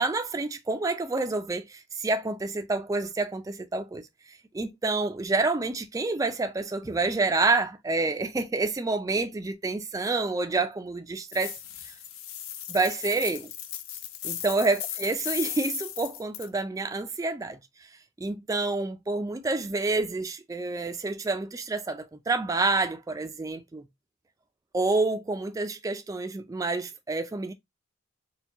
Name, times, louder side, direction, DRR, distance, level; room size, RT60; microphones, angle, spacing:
voice 1, 0.0-11.6 12.7-13.5 14.2-17.6 18.2-23.8 24.7-27.5, right 3 dB, 15° right, 0.3 m, -28 dB
sound 1, 11.3-16.5, left 10 dB, 80° left, 0.5 m, -37 dB
4.4 x 2.2 x 2.7 m
head